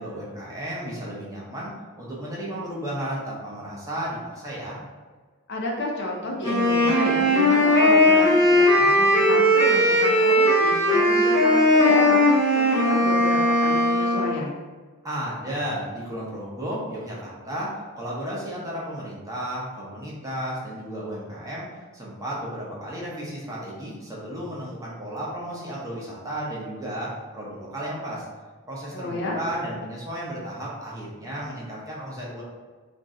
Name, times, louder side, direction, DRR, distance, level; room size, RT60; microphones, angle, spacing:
voice 1, 0.0-4.8 15.0-21.7 21.9-28.2 28.7-32.4, equal, 15° right, -6 dB, 0.6 m, -33 dB
voice 2, 5.5-14.6 28.9-29.4, left 1 dB, 50° left, -1 dB, 0.5 m, -31 dB
Wind instrument woodwind instrument, 6.4-14.3, left 1 dB, 15° left, 0.8 m, -18 dB
2.5 x 2.1 x 3.6 m, 1.4 s
head